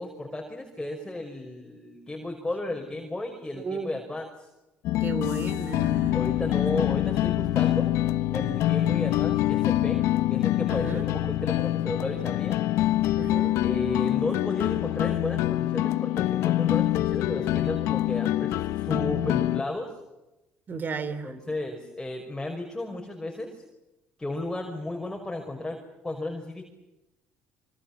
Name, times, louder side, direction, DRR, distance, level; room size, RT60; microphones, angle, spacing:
voice 1, 0.0-4.5 6.1-7.9 8.3-10.0 10.3-12.6 13.6-19.9 21.2-23.6 24.2-26.6, left 2 dB, 10° left, 2 dB, 5.6 m, -34 dB
voice 2, 3.5-3.9 5.0-6.2 10.7-11.1 13.1-13.6 20.7-21.3, right 5 dB, 40° right, 14 dB, 3.4 m, -34 dB
sound 1, 4.8-19.6, left 14 dB, 75° left, 1.0 m, -25 dB
26.0 x 25.0 x 7.5 m, 0.96 s
supercardioid pair, 75°, 5 cm